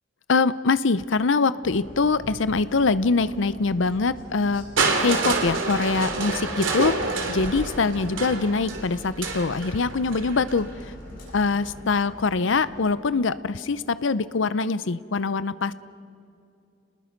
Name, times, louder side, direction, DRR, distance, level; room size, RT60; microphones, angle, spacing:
voice 1, 0.3-4.6 5.0-10.9 11.3-15.7, left 4 dB, 70° left, 16 dB, 0.6 m, -23 dB
sound 1, 1.6-13.6, equal, 45° left, 6.8 m, -42 dB
Crushing, 4.8-10.7 11.6-11.7, right 3 dB, 80° right, 2.6 m, -28 dB
29.0 x 20.0 x 5.3 m, 2.5 s
head